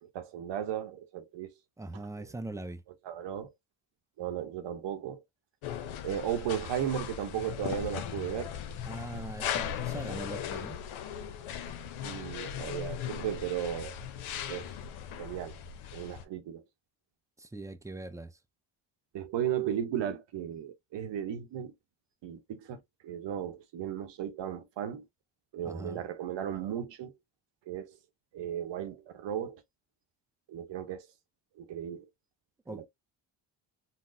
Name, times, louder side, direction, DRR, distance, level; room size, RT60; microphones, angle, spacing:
voice 1, 0.0-1.6 2.2-2.3 3.0-3.5 4.2-5.2 6.0-8.5 9.1-9.5 12.0-14.0 14.5-14.7 15.2-15.6 15.9-16.6 19.1-21.7 22.2-25.0 25.5-27.2 27.7-28.0 28.3-29.6 30.5-31.1 31.6-32.1 32.7-32.9, right 9 dB, 60° right, 0.8 m, -35 dB
voice 2, 1.8-2.8 8.9-10.8 17.4-18.4 25.6-26.0 32.7-32.9, right 2 dB, 5° right, 0.4 m, -41 dB
sound 1, 5.6-16.2, left 9 dB, 80° left, 0.7 m, -38 dB
4.0 x 2.1 x 2.5 m
supercardioid pair, 65°, 47 cm